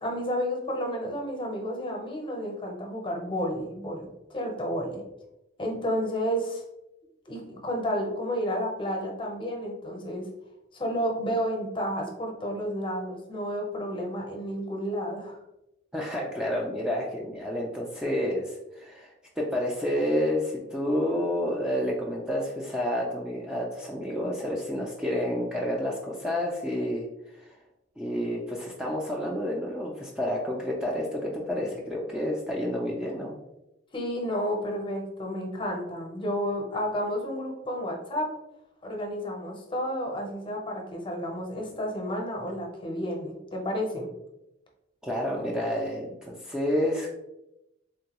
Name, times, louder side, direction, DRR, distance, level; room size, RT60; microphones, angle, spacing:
voice 1, 0.0-5.0 5.6-6.6 7.3-10.2 10.7-15.4 33.9-38.3 38.8-44.1, equal, 25° left, 1 dB, 0.7 m, -31 dB
voice 2, 15.9-27.6 28.0-33.3 45.0-47.1, left 1 dB, 5° right, -3 dB, 0.3 m, -29 dB
3.5 x 2.2 x 2.9 m, 0.90 s
head